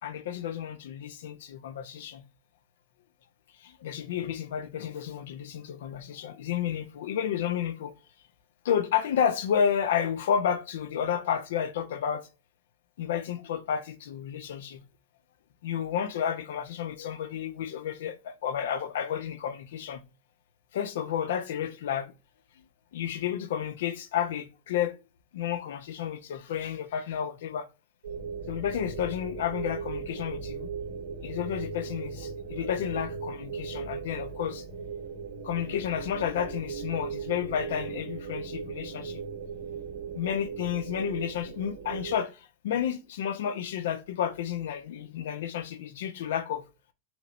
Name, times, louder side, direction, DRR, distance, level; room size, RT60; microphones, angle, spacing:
voice 1, 0.0-2.2 3.6-7.9 8.6-12.3 13.0-14.8 15.6-20.0 20.7-22.1 22.6-25.0 25.3-27.7 28.5-30.7 31.2-34.6 35.4-39.2 40.1-46.6, left 9 dB, 75° left, 0.9 m, -31 dB
sound 1, 28.0-42.2, right 5 dB, 85° right, 2.0 m, -38 dB
6.3 x 5.0 x 3.2 m
hypercardioid pair, 85°, 0 cm